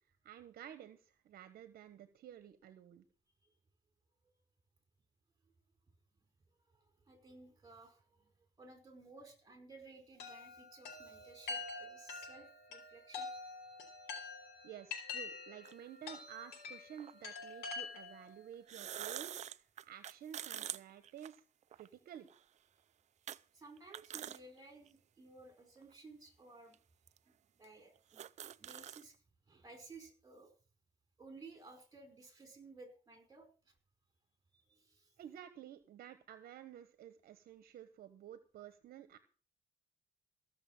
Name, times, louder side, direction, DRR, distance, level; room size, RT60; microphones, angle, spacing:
voice 1, 0.2-3.0 14.6-19.4 19.9-21.4 21.7-22.3 35.2-39.2, right 10 dB, 60° right, 11 dB, 1.2 m, -52 dB
voice 2, 6.7-13.3 14.0-14.3 23.5-26.8 27.6-28.2 28.6-29.2 29.5-30.5 31.2-33.7 34.5-35.1, right 3 dB, 20° right, 6 dB, 4.9 m, -57 dB
Chime, 10.2-18.3, left 4 dB, 80° left, 4.8 m, -46 dB
sound 1, 15.6-15.7 17.0-17.1 18.5-21.9 22.3-22.4 23.3-23.4 23.8-24.4 24.9-25.0 25.8-25.9 26.7-26.8 27.1-27.2 27.6-27.7 28.0-29.0, right 10 dB, 45° right, 0.5 m, -45 dB
15.5 x 6.8 x 7.3 m, 0.39 s
cardioid pair, 110°, 17 cm